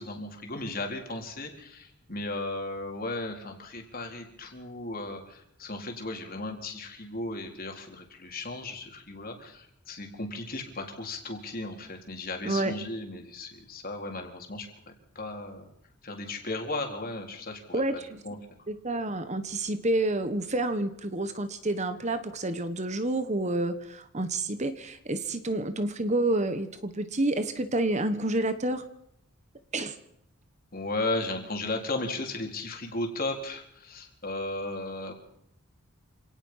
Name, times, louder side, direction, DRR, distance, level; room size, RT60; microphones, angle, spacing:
voice 1, 0.0-15.7 16.0-18.0 18.2-18.4 30.7-35.1, left 2 dB, 40° left, 3 dB, 4.0 m, -35 dB
voice 2, 12.4-12.7 17.7-18.2 18.7-28.8 29.7-29.9, right 2 dB, 30° right, 10 dB, 1.3 m, -29 dB
27.0 x 18.0 x 5.8 m, 0.75 s
head